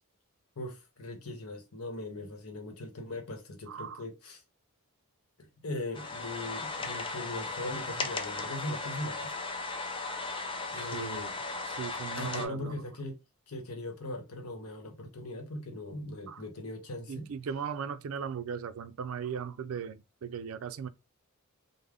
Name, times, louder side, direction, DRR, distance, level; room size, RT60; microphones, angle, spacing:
voice 1, 0.6-4.4 5.4-9.3 10.7-11.3 12.1-13.2 13.5-17.3, left 1 dB, 80° left, 0.9 m, -40 dB
voice 2, 3.7-4.0 10.7-12.7 16.3-16.4 17.1-20.9, right 7 dB, 70° right, 0.4 m, -38 dB
sound 1, 5.9-12.5, left 3 dB, 25° left, 0.5 m, -36 dB
3.4 x 2.0 x 3.6 m
head